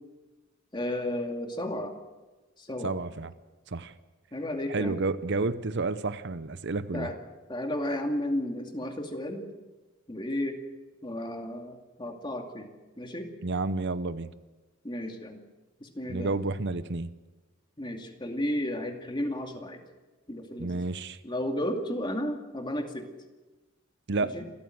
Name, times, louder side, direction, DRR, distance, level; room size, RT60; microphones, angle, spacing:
voice 1, 0.7-1.9 2.6-2.9 4.3-5.0 6.9-7.1 7.5-9.4 10.1-10.6 11.0-12.7 13.0-13.3 14.8-15.4 15.8-16.3 17.8-19.8 20.3-20.8 21.2-23.1 24.2-24.4, left 1 dB, 25° left, 4 dB, 2.4 m, -33 dB
voice 2, 2.8-3.3 3.7-3.9 4.7-7.1 13.4-14.3 16.1-17.1 20.6-21.2 24.1-24.4, right 3 dB, 60° right, 13 dB, 0.8 m, -30 dB
27.0 x 14.0 x 7.9 m, 1.2 s
head